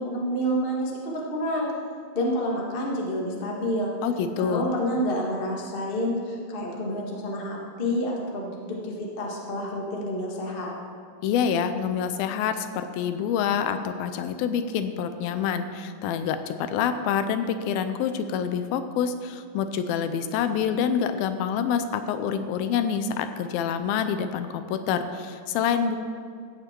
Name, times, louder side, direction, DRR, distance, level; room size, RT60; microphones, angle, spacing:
voice 1, 0.0-1.7 2.1-3.9 4.3-10.7, equal, 65° left, -2 dB, 0.5 m, -28 dB
voice 2, 4.0-4.7 11.2-26.0, left 7 dB, 80° left, 9 dB, 2.4 m, -27 dB
15.0 x 9.1 x 4.5 m, 2.3 s
omnidirectional pair, 4.4 m